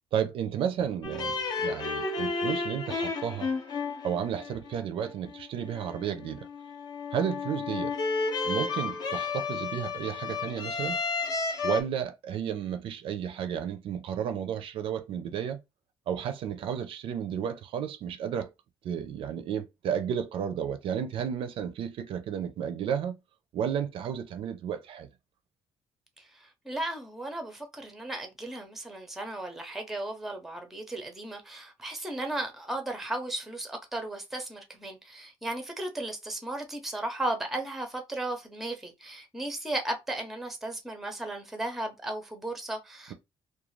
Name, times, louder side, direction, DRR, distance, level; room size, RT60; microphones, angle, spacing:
voice 1, 0.1-3.5 4.0-6.5 7.1-7.9 8.4-11.0 11.6-15.6 16.1-18.5 18.8-23.2 23.5-25.1, right 8 dB, 60° right, 0.4 m, -32 dB
sound 1, 1.0-11.8, left 4 dB, 45° left, 0.5 m, -32 dB
voice 2, 26.2-43.1, right 1 dB, 5° right, 0.5 m, -35 dB
2.4 x 2.2 x 3.0 m
cardioid pair, 170°, 10 cm